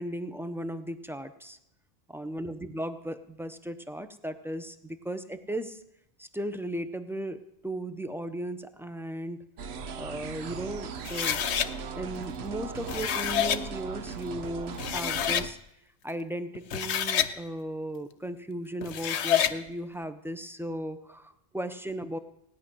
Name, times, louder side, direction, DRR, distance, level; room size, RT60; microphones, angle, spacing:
voice 1, 0.0-1.6 2.1-5.8 6.2-9.4 10.0-11.4 12.0-15.6 16.0-22.2, right 1 dB, 5° right, 9 dB, 0.6 m, -36 dB
sound 1, 9.6-15.5, right 5 dB, 70° right, 1.0 m, -38 dB
sound 2, 11.0-11.7 12.7-13.6 14.4-14.5 14.8-15.5 16.5-17.3 18.8-19.6, left 9 dB, 75° left, 1.0 m, -27 dB
17.0 x 6.2 x 9.8 m, 0.80 s
omnidirectional pair, 1.1 m